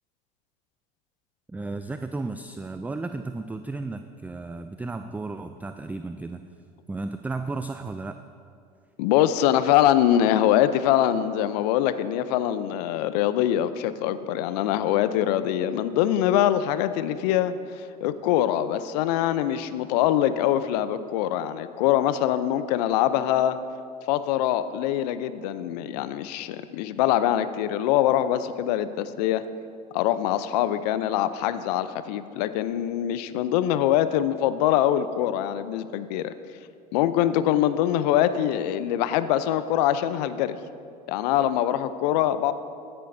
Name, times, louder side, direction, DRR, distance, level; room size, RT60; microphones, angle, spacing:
voice 1, 1.5-6.4 6.9-8.2, right 3 dB, 5° right, 8 dB, 0.3 m, -34 dB
voice 2, 9.0-23.6 24.1-29.4 29.9-36.3 36.9-40.6 41.1-42.5, left 11 dB, 70° left, 13 dB, 0.6 m, -23 dB
15.5 x 10.0 x 2.7 m, 2.4 s
hypercardioid pair, 80°, 21 cm